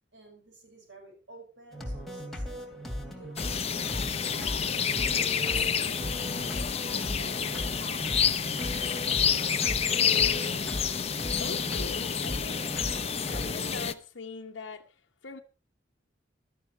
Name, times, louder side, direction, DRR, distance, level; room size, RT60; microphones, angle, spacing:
voice 1, 0.1-3.6 4.0-6.3 6.8-8.1 8.5-9.6, right 1 dB, 70° right, 6.4 m, -51 dB
sound 1, 1.7-13.6, equal, ahead, 2.7 m, -38 dB
sound 2, 3.4-13.9, left 7 dB, 35° left, 0.9 m, -29 dB
voice 2, 11.4-12.7 13.3-15.4, left 4 dB, 85° left, 1.0 m, -42 dB
15.5 x 12.5 x 4.5 m
head